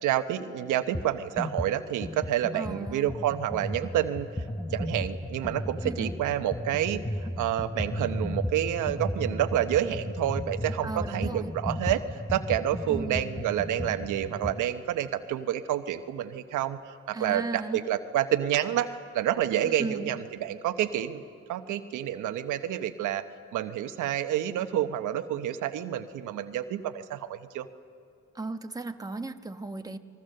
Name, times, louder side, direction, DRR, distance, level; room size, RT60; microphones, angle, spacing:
voice 1, 0.0-4.3 4.7-21.2 21.5-23.2 23.5-27.7, right 11 dB, 85° right, 9 dB, 1.0 m, -29 dB
sound 1, 0.9-1.1 1.4-14.7, left 1 dB, 10° left, 0.7 m, -35 dB
voice 2, 2.5-3.2 5.8-6.2 10.8-11.5 12.9-13.4 17.1-17.9 19.6-20.1 28.3-30.0, right 3 dB, 10° right, 6 dB, 1.1 m, -36 dB
29.5 x 21.5 x 6.6 m, 2.3 s
cardioid pair, 90°, 30 cm